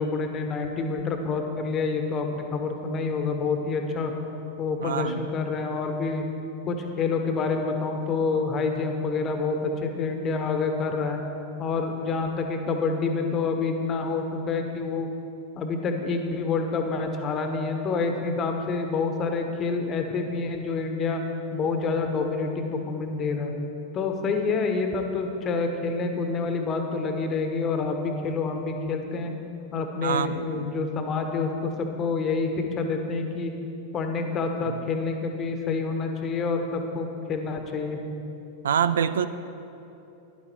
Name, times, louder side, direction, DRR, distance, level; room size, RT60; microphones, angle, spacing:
voice 1, 0.0-4.1 4.6-6.2 6.7-11.2 11.6-15.1 15.6-21.2 21.5-23.5 23.9-29.3 29.7-33.5 33.9-38.0, left 4 dB, 30° left, 5 dB, 1.3 m, -27 dB
voice 2, 4.8-5.2 30.0-30.4 34.7-34.8 38.6-39.3, right 8 dB, 65° right, 13 dB, 0.4 m, -25 dB
12.0 x 10.5 x 4.5 m, 2.8 s
figure-of-eight pair, 90°, 0 cm